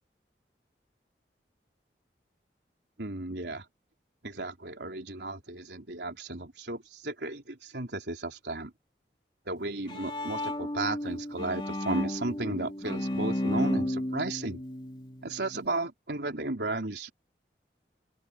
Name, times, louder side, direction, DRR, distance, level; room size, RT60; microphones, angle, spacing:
voice 1, 3.0-3.6 4.2-8.7 9.5-14.6 15.2-17.1, right 2 dB, 80° right, 3.8 m, -34 dB
Bowed string instrument, 9.6-15.7, left 1 dB, 30° left, 2.8 m, -33 dB
open air
head